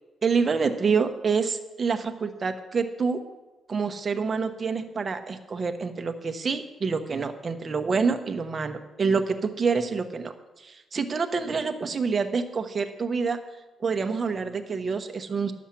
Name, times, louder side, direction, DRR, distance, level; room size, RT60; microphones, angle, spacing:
voice 1, 0.2-3.2 3.7-10.3 10.6-13.4 13.8-15.5, right 5 dB, 35° right, 7 dB, 1.0 m, -27 dB
11.5 x 7.2 x 6.0 m, 1.1 s
cardioid pair, 100°, 0 cm